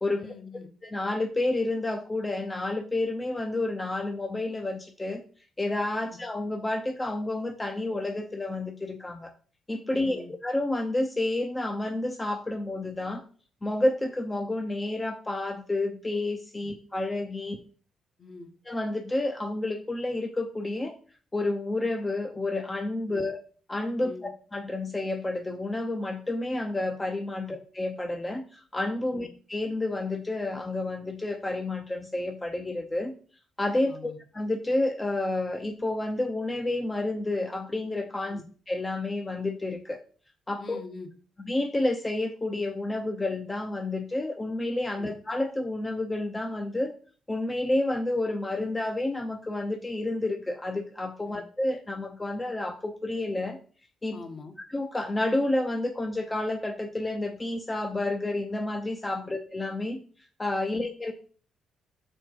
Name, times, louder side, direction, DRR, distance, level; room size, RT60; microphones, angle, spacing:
voice 1, 0.1-0.7 6.0-6.2 9.9-10.3 16.6-16.7 17.5-17.6 18.2-18.5 23.1-23.2 24.0-24.3 27.4-27.6 29.1-29.3 33.9-34.2 38.3-38.5 40.6-41.1 44.9-45.1 51.3-51.4 54.1-54.6 59.1-59.3 60.7-60.8, left 3 dB, 40° left, 6 dB, 1.1 m, -44 dB
voice 2, 0.8-5.2 5.6-9.3 9.7-13.2 13.6-17.6 18.7-20.9 21.3-23.4 23.7-33.1 33.6-38.4 38.7-40.0 40.5-40.8 41.4-46.9 47.3-53.6 54.0-54.2 54.7-60.0 60.4-61.1, left 2 dB, 20° left, 5 dB, 0.6 m, -30 dB
5.9 x 4.5 x 4.5 m, 0.42 s
cardioid pair, 90°, 0 cm